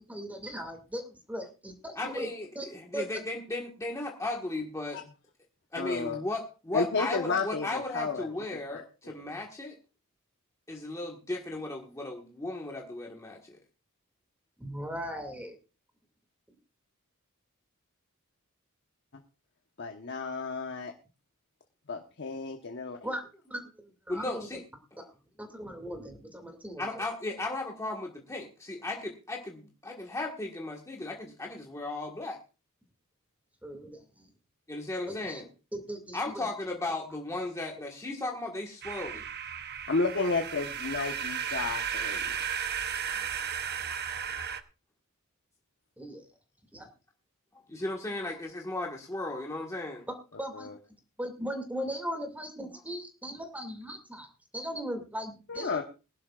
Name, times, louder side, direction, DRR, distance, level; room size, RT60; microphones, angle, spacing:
voice 1, 0.0-2.3 2.6-3.0 14.6-15.6 23.0-24.5 25.4-27.0 33.6-34.3 35.1-35.4 35.7-36.5 46.0-46.3 46.7-46.9 50.1-50.7 51.2-54.3 54.5-55.8, equal, 5° right, 6 dB, 2.3 m, -38 dB
voice 2, 1.9-5.0 5.7-9.8 10.7-13.6 24.1-24.6 26.8-32.4 34.7-35.5 36.1-39.2 47.5-50.1, left 2 dB, 15° left, -1 dB, 1.6 m, -36 dB
voice 3, 5.8-6.2 6.7-8.3 8.7-8.8 9.2-9.3 19.8-20.9 21.9-23.0 39.9-42.3 50.5-50.8 55.5-55.8, left 4 dB, 55° left, 4 dB, 1.1 m, -32 dB
sound 1, 38.8-44.6, right 8 dB, 45° right, 0.9 m, -34 dB
21.0 x 11.5 x 2.4 m, 0.32 s
head